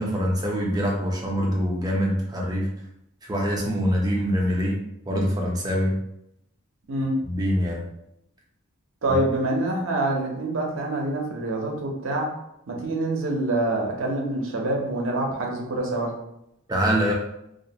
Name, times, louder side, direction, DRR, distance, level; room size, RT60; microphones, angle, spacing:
voice 1, 0.0-2.7 3.2-4.8 5.1-5.9 7.2-7.8 9.1-9.2 16.7-17.1, equal, 20° right, -2 dB, 0.5 m, -24 dB
voice 2, 9.0-12.3 12.7-16.1, right 2 dB, 70° right, 0 dB, 0.6 m, -26 dB
2.4 x 2.1 x 2.7 m, 0.80 s
head